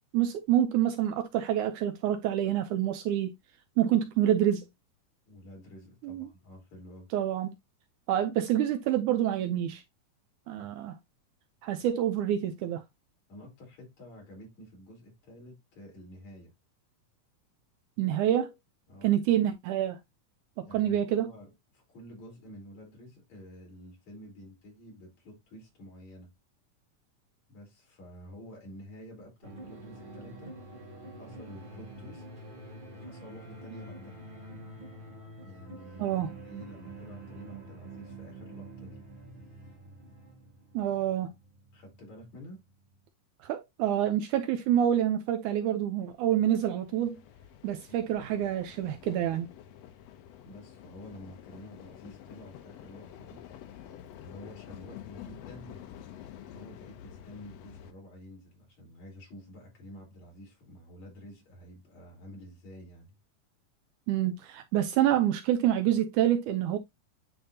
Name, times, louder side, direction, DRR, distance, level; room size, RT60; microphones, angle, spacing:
voice 1, 0.1-3.3 3.8-4.6 6.0-6.3 7.1-7.5 8.1-9.8 10.5-11.0 11.6-12.8 18.0-18.5 19.0-20.0 20.6-21.3 36.0-36.3 40.7-41.3 43.4-47.2 47.6-49.5 64.1-66.8, right 11 dB, 75° right, 1.9 m, -27 dB
voice 2, 5.3-7.1 13.3-16.5 18.9-19.1 20.7-26.3 27.5-30.6 31.1-32.4 32.9-34.2 35.4-39.0 41.7-42.6 47.9-48.0 50.4-53.4 54.2-55.9 56.5-63.2, equal, 55° left, 4.5 m, -49 dB
sound 1, 29.4-43.1, right 2 dB, 30° right, 0.9 m, -47 dB
sound 2, 46.0-57.9, left 10 dB, 80° left, 1.5 m, -49 dB
10.5 x 3.5 x 2.7 m
omnidirectional pair, 3.8 m